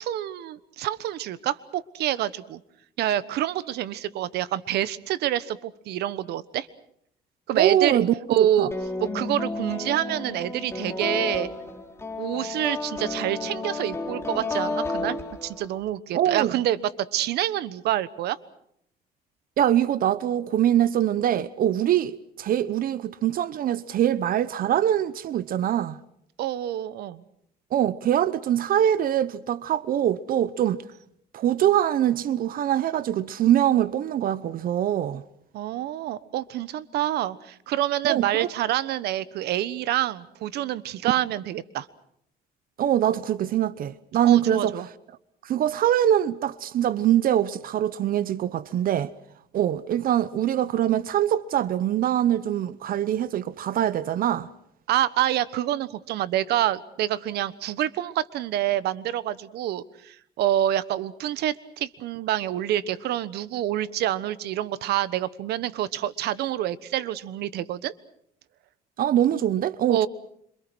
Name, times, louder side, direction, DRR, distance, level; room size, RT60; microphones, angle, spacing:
voice 1, 0.0-2.6 3.0-6.7 7.5-8.0 8.3-8.7 9.1-11.5 12.2-18.4 26.4-27.2 35.5-41.9 44.2-44.9 54.9-67.9 69.9-70.1, right 12 dB, 75° right, 1.3 m, -27 dB
voice 2, 7.5-8.7 16.1-16.5 19.6-26.0 27.7-30.8 31.3-35.2 38.0-38.5 42.8-44.7 45.4-49.1 49.5-54.5 69.0-70.1, right 11 dB, 60° right, 0.9 m, -23 dB
sound 1, 8.7-15.8, left 3 dB, 15° left, 3.9 m, -32 dB
27.0 x 26.0 x 6.2 m
cardioid pair, 110°, 17 cm